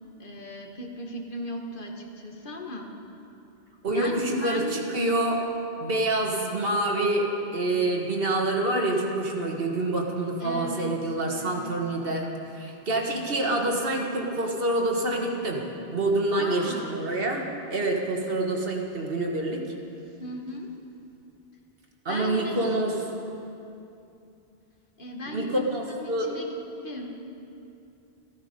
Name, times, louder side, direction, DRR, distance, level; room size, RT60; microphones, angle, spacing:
voice 1, 0.2-2.9 3.9-4.9 10.4-11.0 11.4-11.7 13.4-13.9 16.4-16.9 20.2-20.7 22.1-23.0 25.0-27.1, left 1 dB, 55° left, 1 dB, 1.5 m, -36 dB
voice 2, 3.8-5.4 5.8-12.3 12.5-15.6 15.9-19.6 22.0-23.0 25.3-26.3, right 2 dB, 65° right, 1 dB, 1.6 m, -27 dB
14.5 x 13.0 x 5.2 m, 2.7 s
omnidirectional pair, 1.0 m